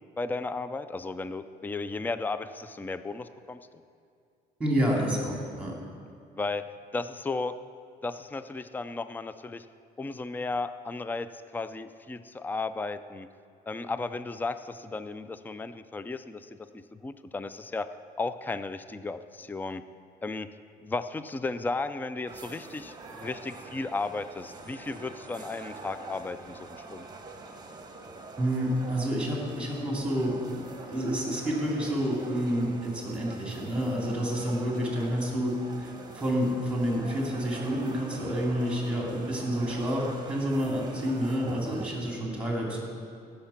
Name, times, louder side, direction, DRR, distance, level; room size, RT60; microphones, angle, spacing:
voice 1, 0.2-3.6 6.3-7.6 8.0-9.7 10.0-13.3 13.7-17.9 18.2-19.8 20.2-20.5 20.8-27.1, left 3 dB, 10° left, 12 dB, 0.4 m, -34 dB
voice 2, 4.6-5.7 28.4-35.5 35.8-42.8, equal, 5° right, -2 dB, 3.2 m, -29 dB
sound 1, 22.3-41.9, right 3 dB, 25° right, 1.3 m, -45 dB
16.0 x 6.7 x 5.9 m, 2.4 s
cardioid pair, 110°, 17 cm